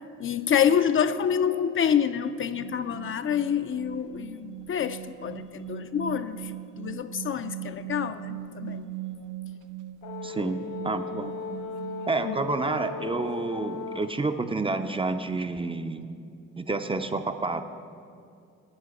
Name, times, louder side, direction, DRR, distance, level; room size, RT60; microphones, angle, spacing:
voice 1, 0.2-6.5 6.8-8.9 12.2-12.4, left 8 dB, 45° left, 10 dB, 0.4 m, -27 dB
sound 1, 2.5-14.4, right 14 dB, 75° right, 0.6 m, -41 dB
Brass instrument, 10.0-14.2, left 5 dB, 60° left, 0.8 m, -37 dB
voice 2, 10.2-11.3 12.1-16.1 16.6-17.6, right 3 dB, 20° right, 8 dB, 0.4 m, -29 dB
10.0 x 5.6 x 8.2 m, 2.5 s
cardioid pair, 90°, 30 cm